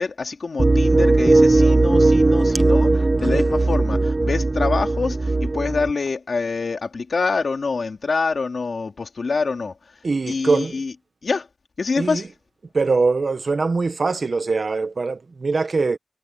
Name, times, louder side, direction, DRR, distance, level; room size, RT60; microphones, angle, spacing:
voice 1, 0.0-9.8 10.3-10.9 11.2-11.5 11.8-12.3, left 4 dB, 85° left, 3.3 m, -26 dB
sound 1, 0.6-5.9, right 2 dB, 45° right, 0.7 m, -18 dB
voice 2, 10.0-10.8 12.0-12.2 12.7-16.0, right 4 dB, 75° right, 1.4 m, -22 dB
cardioid pair, 40°, 0 cm